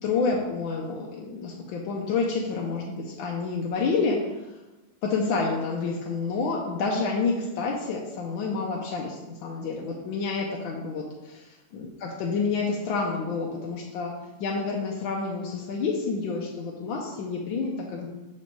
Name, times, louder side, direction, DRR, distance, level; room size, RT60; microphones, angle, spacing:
voice 1, 0.0-4.2 5.0-11.4 11.7-14.1 14.4-18.1, left 4 dB, 85° left, -2 dB, 1.5 m, -29 dB
6.0 x 4.3 x 4.6 m, 1.1 s
omnidirectional pair, 2.1 m